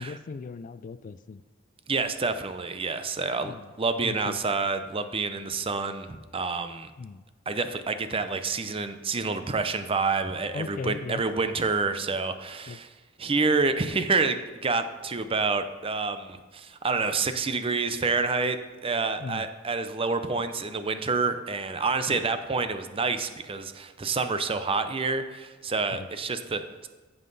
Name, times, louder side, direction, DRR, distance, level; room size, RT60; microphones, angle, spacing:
voice 1, 0.0-1.4 3.4-3.7 4.0-4.4 7.0-7.2 10.5-11.2 12.7-12.8 19.2-19.5 22.1-22.2 25.9-26.1, left 4 dB, 40° left, 13 dB, 0.3 m, -37 dB
voice 2, 1.9-6.9 7.5-12.9 13.2-18.6 18.8-26.9, right 4 dB, 30° right, 10 dB, 0.6 m, -28 dB
14.5 x 5.6 x 4.0 m, 1.3 s
head